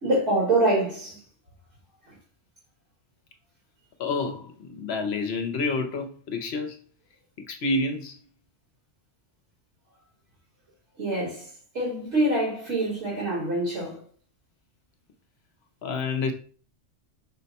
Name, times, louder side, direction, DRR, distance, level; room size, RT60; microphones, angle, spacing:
voice 1, 0.0-1.2 11.0-11.5 11.7-14.0, right 1 dB, 65° right, 1.9 m, -25 dB
voice 2, 4.0-6.8 7.5-8.2 15.8-16.3, left 3 dB, 65° left, 0.8 m, -28 dB
5.5 x 2.1 x 4.0 m
omnidirectional pair, 1.3 m